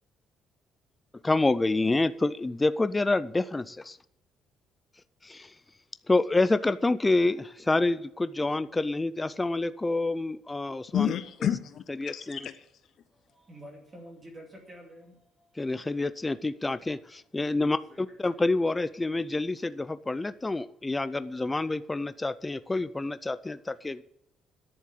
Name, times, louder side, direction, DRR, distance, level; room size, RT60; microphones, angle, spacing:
voice 1, 1.2-4.0 5.2-5.5 6.1-11.1 12.0-12.4 15.6-24.0, left 2 dB, 10° left, 0.3 m, -27 dB
voice 2, 10.9-12.6, left 9 dB, 45° left, 0.6 m, -30 dB
voice 3, 13.1-15.6 17.6-18.2, equal, 20° right, 2.6 m, -49 dB
10.5 x 7.2 x 9.0 m
cardioid pair, 170°, 0 cm